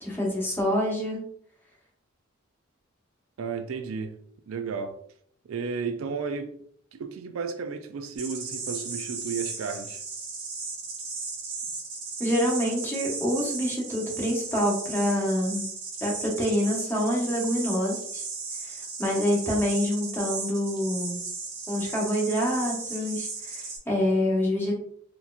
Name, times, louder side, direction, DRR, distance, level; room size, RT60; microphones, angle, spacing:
voice 1, 0.0-1.3 12.2-15.7 16.0-18.2 19.0-21.2 21.7-24.7, equal, 10° left, 1.1 m, -26 dB
voice 2, 3.4-4.1 4.5-4.9 5.4-6.5 6.9-10.0, right 5 dB, 75° right, 0.4 m, -33 dB
sound 1, 8.1-23.8, right 4 dB, 60° right, 1.3 m, -36 dB
4.3 x 2.7 x 2.4 m
head